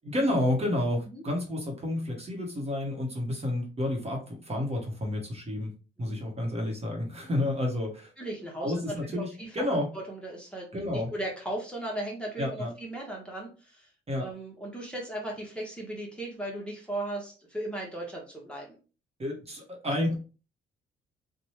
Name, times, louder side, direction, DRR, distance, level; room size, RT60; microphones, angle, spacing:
voice 1, 0.0-5.7 6.0-8.1 8.6-9.9 10.7-11.1 12.4-12.7 14.1-14.3 19.2-20.1, left 1 dB, 30° right, 1 dB, 1.1 m, -30 dB
voice 2, 8.2-9.6 9.9-18.8, right 1 dB, 5° left, -2 dB, 0.9 m, -37 dB
2.8 x 2.2 x 3.1 m, 0.35 s
cardioid pair, 90°, 20 cm